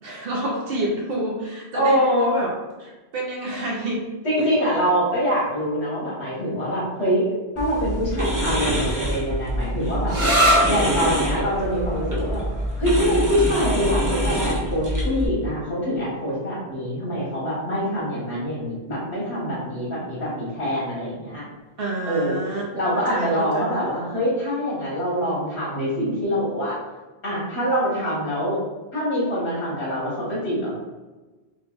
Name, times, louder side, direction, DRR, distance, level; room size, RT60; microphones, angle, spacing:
voice 1, 0.0-2.5 2.8-4.0 4.4-4.5 21.8-22.7 22.9-23.6, right 1 dB, 65° right, -2 dB, 0.8 m, -28 dB
voice 2, 1.7-2.4 4.2-7.2 7.6-10.2 10.7-12.4 12.8-21.4 22.0-26.8 27.2-28.6 28.9-30.7, equal, 85° left, -7 dB, 1.8 m, -24 dB
sound 1, 7.6-15.3, right 1 dB, 25° right, 0.6 m, -26 dB
sound 2, 10.1-17.5, equal, 45° right, 1.1 m, -27 dB
4.5 x 2.5 x 2.4 m, 1.2 s
omnidirectional pair, 1.1 m